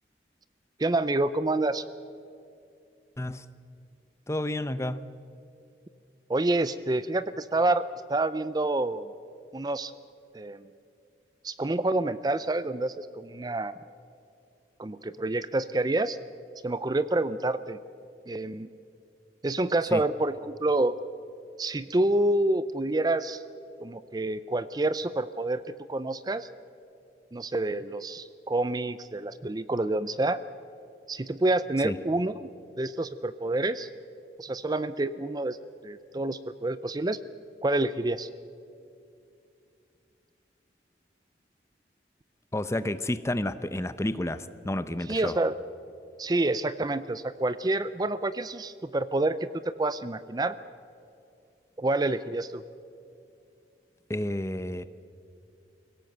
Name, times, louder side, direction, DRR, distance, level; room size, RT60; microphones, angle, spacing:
voice 1, 0.8-1.8 6.3-9.1 9.5-9.9 10.3-10.7 11.4-13.7 14.8-16.2 16.6-17.8 18.3-18.7 19.4-20.9 21.6-23.4 23.8-25.6 25.9-26.5 27.3-30.4 31.1-32.5 32.8-33.9 34.4-35.6 35.8-37.2 37.6-38.3 45.1-45.6 46.2-50.6 51.8-52.6, right 2 dB, 25° right, 14 dB, 0.5 m, -28 dB
voice 2, 3.2-3.5 4.3-5.1 19.9-20.0 31.8-32.0 42.5-45.4 54.1-54.8, left 1 dB, 15° left, 13 dB, 0.7 m, -30 dB
24.5 x 17.0 x 7.9 m, 2.5 s
head